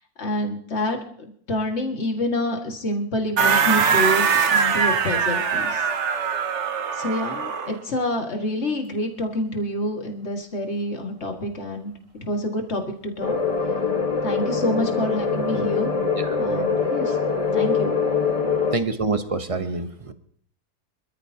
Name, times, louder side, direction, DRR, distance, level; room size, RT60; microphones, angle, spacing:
voice 1, 0.2-1.0 1.5-5.9 6.9-13.4 14.2-15.9 16.4-17.2 17.5-17.9, left 1 dB, 45° left, 2 dB, 2.2 m, -27 dB
sound 1, 3.4-7.8, right 6 dB, 50° right, 1.1 m, -22 dB
sound 2, 13.2-18.8, left 5 dB, 25° left, 1.3 m, -23 dB
voice 2, 18.7-20.1, right 3 dB, 30° right, 9 dB, 0.7 m, -26 dB
25.5 x 13.5 x 2.8 m, 0.62 s
omnidirectional pair, 1.6 m